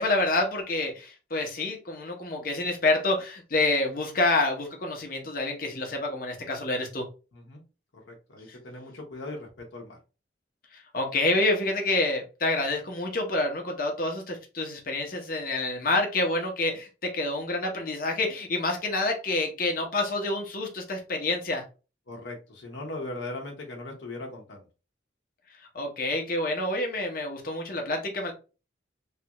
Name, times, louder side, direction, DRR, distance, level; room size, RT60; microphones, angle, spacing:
voice 1, 0.0-7.1 10.9-21.6 25.7-28.3, left 2 dB, 45° left, 2 dB, 0.8 m, -28 dB
voice 2, 8.1-10.0 22.1-24.6, left 2 dB, 80° left, 1 dB, 0.9 m, -39 dB
3.3 x 2.4 x 2.9 m, 0.32 s
head